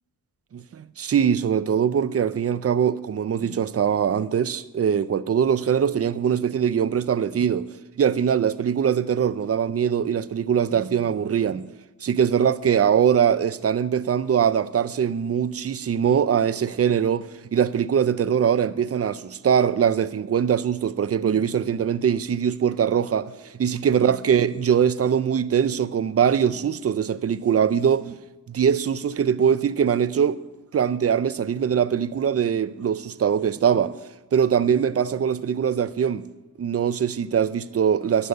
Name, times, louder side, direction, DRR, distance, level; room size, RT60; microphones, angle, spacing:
voice 1, 0.5-7.7 8.0-11.7 12.0-28.1 28.5-30.4 30.7-33.9 34.3-36.3 36.6-38.3, right 8 dB, 40° right, 0.5 m, -22 dB
11.5 x 6.8 x 7.8 m
wide cardioid pair, 110°, 39 cm